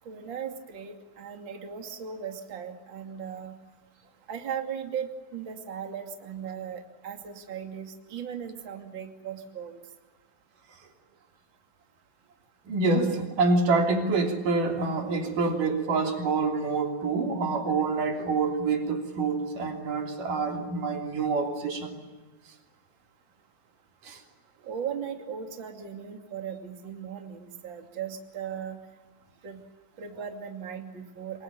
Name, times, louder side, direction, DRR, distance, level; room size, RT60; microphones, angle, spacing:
voice 1, 0.0-3.6 4.3-9.8 24.6-28.8 29.4-29.6 30.0-31.4, right 7 dB, 35° right, 4 dB, 2.9 m, -37 dB
voice 2, 12.7-22.0 24.0-24.2, right 3 dB, 60° right, 3 dB, 4.6 m, -26 dB
26.5 x 24.0 x 8.7 m, 1.2 s
omnidirectional pair, 4.4 m